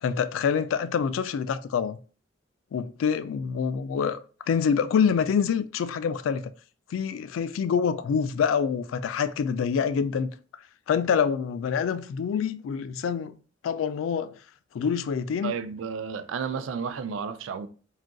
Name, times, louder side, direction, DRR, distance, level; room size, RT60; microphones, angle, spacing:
voice 1, 0.0-2.0 2.7-4.2 4.5-6.5 6.9-10.3 10.9-13.4 13.6-14.3 14.7-15.5, left 6 dB, 90° left, 0.3 m, -26 dB
voice 2, 15.4-17.7, right 6 dB, 75° right, 0.4 m, -32 dB
3.8 x 2.4 x 2.2 m
head